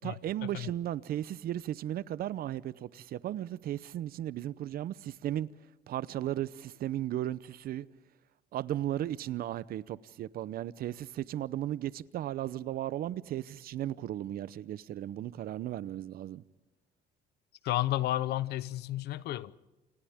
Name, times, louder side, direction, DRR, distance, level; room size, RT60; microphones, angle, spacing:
voice 1, 0.0-5.5 5.9-7.9 8.5-16.4, right 12 dB, 60° right, 0.7 m, -35 dB
voice 2, 17.6-19.5, left 14 dB, 75° left, 0.9 m, -32 dB
28.0 x 27.5 x 3.6 m
cardioid pair, 110°, 17 cm